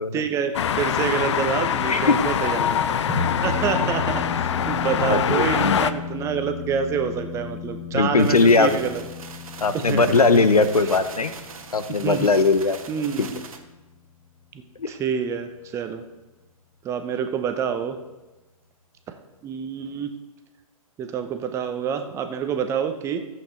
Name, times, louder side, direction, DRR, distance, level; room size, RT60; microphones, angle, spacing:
voice 1, 0.1-9.0 9.7-10.5 12.0-12.3 12.9-13.4 14.5-14.6 14.9-16.0 16.8-18.0 19.4-20.1 21.0-23.2, right 7 dB, 15° right, 8 dB, 0.8 m, -27 dB
sound 1, 0.5-5.9, left 8 dB, 50° left, 0.6 m, -24 dB
voice 2, 1.9-2.2 3.8-3.9 5.0-5.8 7.9-8.7 9.6-11.3 11.7-12.8 13.2-13.3 14.8-14.9, left 3 dB, 85° left, 11 dB, 1.0 m, -19 dB
sound 2, 3.1-13.8, left 5 dB, 30° left, 2.9 m, -34 dB
sound 3, 8.2-13.6, right 5 dB, 70° right, 1.4 m, -41 dB
14.0 x 7.9 x 3.9 m, 1.1 s
figure-of-eight pair, 130°, 19 cm